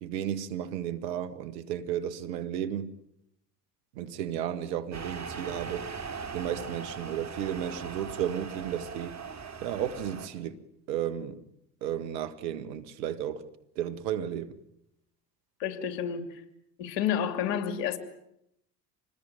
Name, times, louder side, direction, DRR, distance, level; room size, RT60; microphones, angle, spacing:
voice 1, 0.0-3.0 4.0-5.9 6.3-9.2 9.6-10.6 10.9-11.4 11.8-13.5 13.8-14.6, right 10 dB, 80° right, 1.9 m, -33 dB
sound 1, 4.9-10.3, right 5 dB, 35° right, 3.6 m, -40 dB
voice 2, 15.6-16.3 16.8-18.0, left 9 dB, 75° left, 3.1 m, -30 dB
26.5 x 20.0 x 9.1 m
hypercardioid pair, 65°, 49 cm